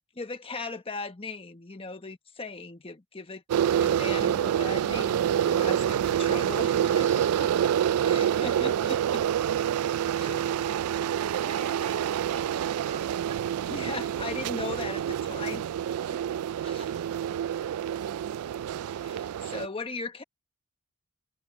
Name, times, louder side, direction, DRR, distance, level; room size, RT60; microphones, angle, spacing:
voice 1, 0.2-3.4 3.8-7.7 8.0-9.2 10.1-10.4 13.7-15.6 16.1-16.2 16.6-16.8 19.0-20.2, left 3 dB, 25° left, 1.2 m, -38 dB
sound 1, 3.5-19.7, right 9 dB, 85° right, 0.3 m, -27 dB
voice 2, 6.7-7.9 11.0-13.4 16.2-17.0, right 5 dB, 30° right, 1.8 m, -48 dB
head